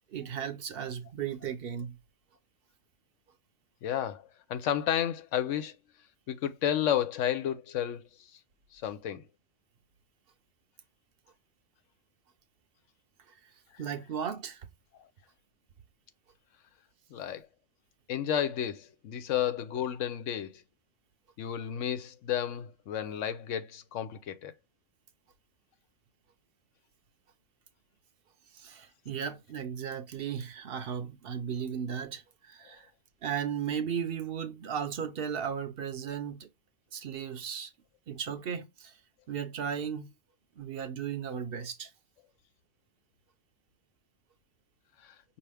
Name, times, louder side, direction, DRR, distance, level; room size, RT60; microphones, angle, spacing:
voice 1, 0.1-2.0 13.8-14.7 28.5-32.9 33.2-36.5 36.9-37.7 38.1-39.0 39.3-40.1 40.6-41.9, right 8 dB, 60° right, 0.7 m, -35 dB
voice 2, 3.8-5.8 6.3-8.3 8.7-9.2 17.1-17.5 18.1-20.6 21.4-24.5 32.7-32.8 45.0-45.1, left 10 dB, 90° left, 1.0 m, -32 dB
5.6 x 2.8 x 3.3 m
omnidirectional pair, 1.2 m